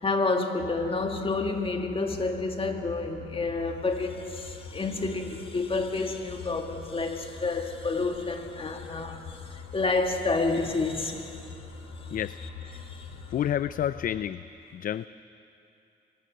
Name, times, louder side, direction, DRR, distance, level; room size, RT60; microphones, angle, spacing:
voice 1, 0.0-11.6 12.7-13.1, left 3 dB, 30° left, 2.1 m, -29 dB
sound 1, 0.6-14.2, left 5 dB, 75° left, 2.6 m, -44 dB
voice 2, 13.3-14.4 14.7-15.1, left 10 dB, 45° left, 0.4 m, -29 dB
23.0 x 18.5 x 6.4 m
cardioid pair, 90°, 20 cm